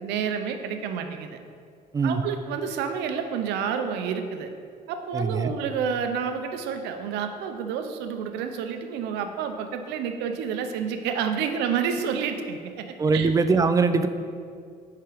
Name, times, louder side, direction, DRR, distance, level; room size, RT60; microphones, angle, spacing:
voice 1, 0.0-1.4 2.0-4.5 4.9-12.8 13.1-13.3, right 7 dB, 90° right, 7 dB, 0.6 m, -29 dB
voice 2, 5.1-5.5 13.0-14.1, right 4 dB, 20° right, 10 dB, 0.3 m, -22 dB
5.6 x 5.0 x 5.0 m, 2.2 s
cardioid pair, 110°, 17 cm